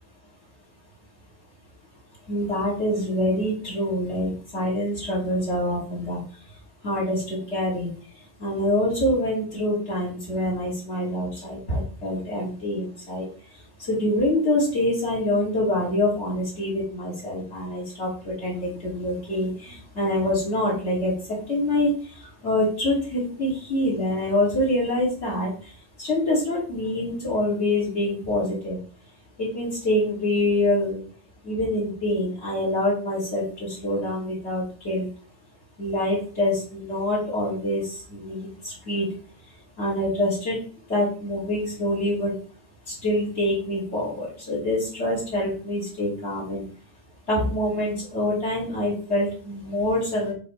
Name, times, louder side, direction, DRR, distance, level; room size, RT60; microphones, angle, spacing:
voice 1, 2.3-6.2 6.8-28.8 29.4-31.0 31.4-35.1 35.8-39.1 39.4-40.6 40.9-42.3 42.9-46.6 47.3-50.3, left 1 dB, 75° left, -5 dB, 3.1 m, -26 dB
10.0 x 4.3 x 3.3 m, 0.42 s
omnidirectional pair, 1.1 m